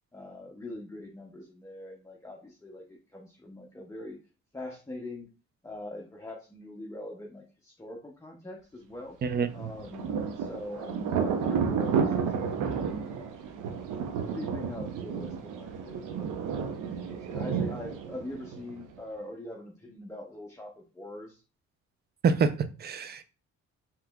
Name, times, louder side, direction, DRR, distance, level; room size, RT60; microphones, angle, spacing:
voice 1, 0.1-4.2 4.5-5.3 5.6-9.2 9.5-12.7 14.3-21.4, left 1 dB, 10° left, 0.6 m, -43 dB
voice 2, 9.2-9.7 22.2-23.2, right 5 dB, 35° right, 0.4 m, -27 dB
Thunder, 9.5-19.0, right 6 dB, 90° right, 0.6 m, -31 dB
3.6 x 2.9 x 2.2 m
cardioid pair, 90°, 30 cm